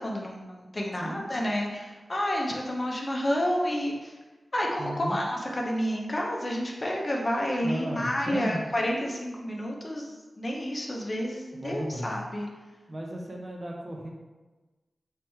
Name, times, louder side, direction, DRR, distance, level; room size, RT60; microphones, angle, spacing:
voice 1, 0.0-4.1 4.5-12.5, equal, 35° left, -1 dB, 0.6 m, -30 dB
voice 2, 4.8-5.2 7.6-8.6 11.5-12.1 12.9-14.1, equal, 35° right, -1 dB, 0.6 m, -34 dB
3.3 x 3.2 x 3.0 m, 1.2 s
wide cardioid pair, 85°, 0 cm